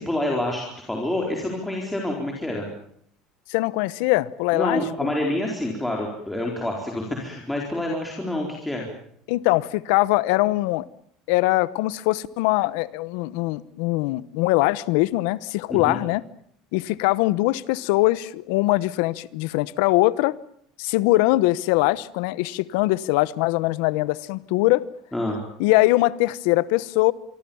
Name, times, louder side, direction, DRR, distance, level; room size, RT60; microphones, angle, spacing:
voice 1, 0.0-2.7 4.5-8.9 15.7-16.0 25.1-25.4, left 1 dB, 5° left, 4.4 m, -27 dB
voice 2, 3.5-5.1 9.3-10.9 11.3-16.2 16.7-20.4 20.8-24.8 25.6-27.1, left 19 dB, 80° left, 1.0 m, -22 dB
26.0 x 24.0 x 7.2 m
cardioid pair, 150°, 0 cm